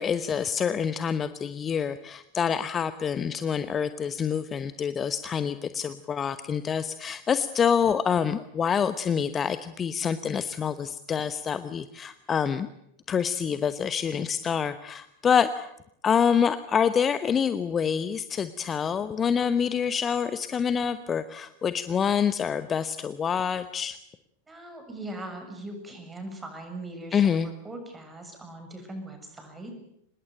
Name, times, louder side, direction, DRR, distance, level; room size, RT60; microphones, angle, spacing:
voice 1, 0.0-12.7 13.1-15.7 16.0-24.0 27.1-27.5, left 7 dB, 20° left, 13 dB, 1.0 m, -26 dB
voice 2, 24.5-29.8, right 1 dB, 15° right, 6 dB, 7.0 m, -40 dB
25.5 x 21.0 x 9.0 m, 0.76 s
figure-of-eight pair, 90°, 0 cm